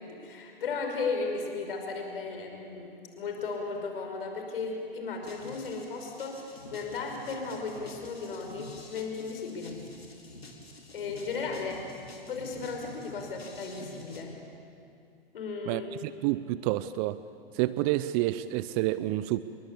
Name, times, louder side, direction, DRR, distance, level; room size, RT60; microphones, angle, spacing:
voice 1, 0.0-9.8 10.9-11.8 12.3-14.3 15.3-15.9, left 4 dB, 65° left, 3 dB, 5.6 m, -35 dB
sound 1, 5.2-14.2, left 2 dB, 85° left, 4.4 m, -48 dB
voice 2, 15.7-17.2 17.5-19.4, right 16 dB, 40° right, 14 dB, 0.8 m, -29 dB
28.5 x 22.5 x 8.5 m, 2.5 s
figure-of-eight pair, 100°, 30 cm